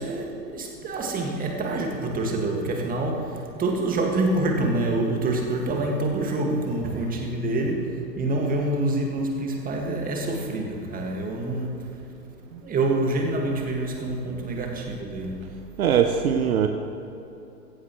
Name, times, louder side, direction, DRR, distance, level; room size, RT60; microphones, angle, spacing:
voice 1, 0.0-12.0 12.6-15.5, right 2 dB, 15° right, 1 dB, 2.1 m, -26 dB
voice 2, 15.8-16.7, right 8 dB, 60° right, 6 dB, 1.0 m, -21 dB
15.5 x 15.5 x 3.2 m, 2.9 s
figure-of-eight pair, 105°, 49 cm